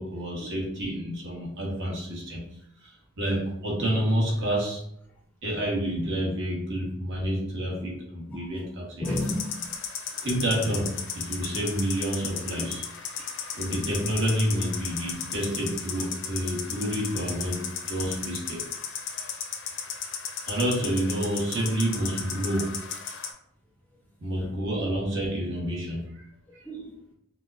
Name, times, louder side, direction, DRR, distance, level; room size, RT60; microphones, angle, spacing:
voice 1, 0.0-2.4 2.8-4.8 5.4-9.2 10.2-12.8 13.6-18.6 20.5-22.8 24.2-26.2 26.5-26.6, right 1 dB, 60° right, -3 dB, 1.2 m, -29 dB
sound 1, 9.0-23.3, left 7 dB, 60° left, 0.5 m, -35 dB
voice 2, 9.0-9.8 13.2-13.5 24.3-24.5 26.6-27.1, left 1 dB, 10° left, -2 dB, 0.4 m, -34 dB
5.1 x 2.1 x 2.5 m, 0.73 s
head